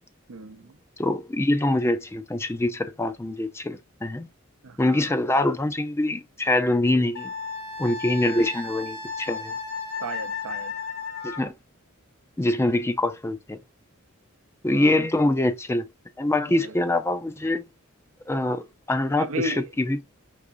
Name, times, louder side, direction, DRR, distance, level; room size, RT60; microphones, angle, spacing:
voice 1, 0.3-0.8 4.6-5.2 10.0-10.7 14.7-15.1 16.4-16.9 19.2-19.7, right 2 dB, 90° right, 0.6 m, -35 dB
voice 2, 1.0-4.3 4.8-7.3 7.8-9.5 11.2-11.5 12.4-13.6 14.6-15.9 16.2-17.6 18.3-20.0, left 1 dB, 10° left, 0.4 m, -24 dB
Wind instrument woodwind instrument, 7.1-11.5, left 5 dB, 85° left, 1.7 m, -34 dB
4.8 x 3.4 x 2.6 m
head